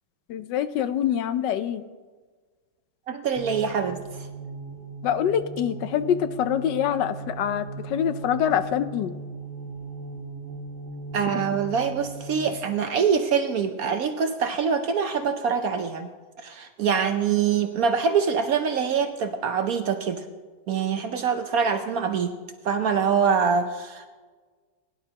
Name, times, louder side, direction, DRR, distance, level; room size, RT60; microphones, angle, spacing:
voice 1, 0.3-1.8 5.0-9.1, left 9 dB, 75° left, 12 dB, 1.2 m, -25 dB
voice 2, 3.1-4.3 11.1-16.1 16.4-20.2 20.7-22.3 22.6-24.1, right 6 dB, 65° right, 7 dB, 0.9 m, -24 dB
sound 1, 3.3-12.7, right 3 dB, 40° right, 1.8 m, -38 dB
20.5 x 11.0 x 2.8 m, 1.4 s
omnidirectional pair, 2.0 m